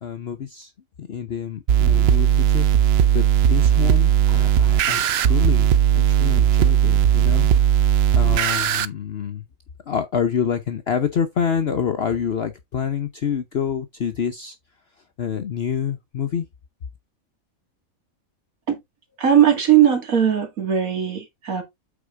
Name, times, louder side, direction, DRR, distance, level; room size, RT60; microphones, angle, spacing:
voice 1, 0.0-0.7 1.0-2.7 2.9-7.5 8.1-9.4 9.9-14.6 15.2-16.5, left 7 dB, 50° left, 1.0 m, -27 dB
sound 1, 1.7-8.9, right 9 dB, 60° right, 0.7 m, -17 dB
voice 2, 19.2-21.6, right 9 dB, 80° right, 2.5 m, -18 dB
8.5 x 4.6 x 3.7 m
omnidirectional pair, 1.4 m